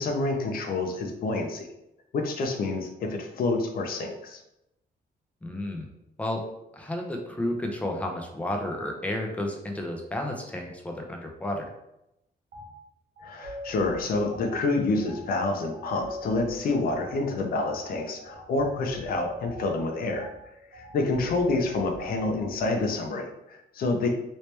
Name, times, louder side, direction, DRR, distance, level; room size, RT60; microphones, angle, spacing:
voice 1, 0.0-1.7 2.1-4.4 13.2-20.3 20.7-24.1, left 3 dB, 60° left, 3 dB, 0.5 m, -28 dB
voice 2, 5.4-5.9 6.2-6.4 6.7-11.7 22.1-22.3, left 1 dB, 10° left, 1 dB, 0.5 m, -32 dB
sound 1, 12.5-12.7 13.2-22.9, equal, 65° right, 0.8 m, -42 dB
3.1 x 2.9 x 3.2 m, 0.85 s
wide cardioid pair, 155°, 17 cm